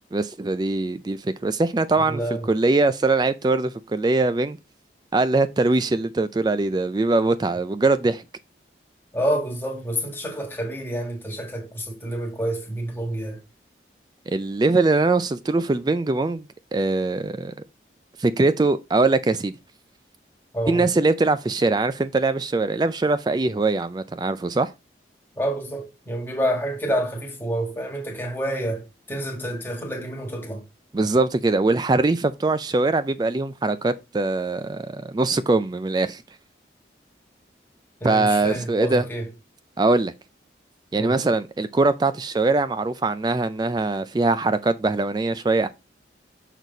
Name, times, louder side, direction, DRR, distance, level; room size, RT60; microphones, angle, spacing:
voice 1, 0.0-2.2 2.5-4.6 5.1-8.2 14.3-16.5 16.7-17.5 18.2-19.6 20.7-24.7 30.9-36.2 38.0-39.1 39.8-40.1 40.9-45.7, right 3 dB, 25° right, 0.3 m, -22 dB
voice 2, 2.1-2.5 9.1-13.4 20.5-20.9 25.4-30.6 38.0-39.3 40.9-41.2, right 1 dB, 10° left, 1.6 m, -28 dB
6.4 x 4.1 x 3.9 m
head